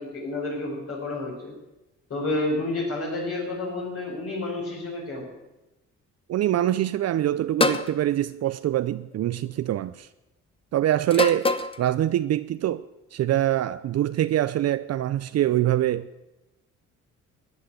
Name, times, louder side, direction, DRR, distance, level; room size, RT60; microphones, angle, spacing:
voice 1, 0.0-1.6 2.1-5.3, left 2 dB, 50° left, 4.9 m, -30 dB
voice 2, 6.3-10.1 10.7-16.1, right 12 dB, 55° right, 0.5 m, -24 dB
sound 1, 7.6-7.9 9.1-9.5 11.1-11.8, left 3 dB, 20° left, 0.8 m, -24 dB
13.5 x 9.1 x 8.4 m
cardioid pair, 90°, 30 cm